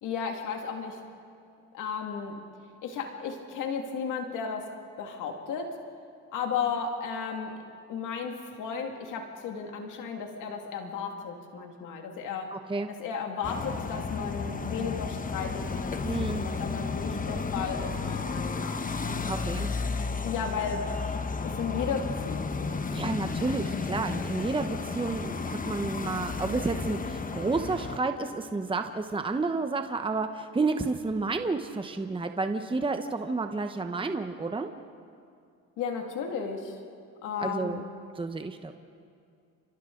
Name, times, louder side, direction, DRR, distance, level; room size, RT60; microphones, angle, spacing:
voice 1, 0.0-1.0 1.7-2.4 2.8-4.7 5.0-5.8 6.3-7.5 7.9-12.5 12.9-18.8 20.2-20.9 21.4-22.8 23.4-23.6 35.8-36.8 37.2-37.8, left 6 dB, 90° left, 3 dB, 2.3 m, -34 dB
voice 2, 12.5-12.9 16.0-16.4 19.3-19.7 22.9-34.7 37.4-37.8 38.2-38.7, right 3 dB, 15° right, 7 dB, 1.0 m, -30 dB
sound 1, 13.4-28.0, left 4 dB, 25° left, 1.1 m, -33 dB
29.5 x 26.5 x 3.9 m, 2.3 s
cardioid pair, 90°, 30 cm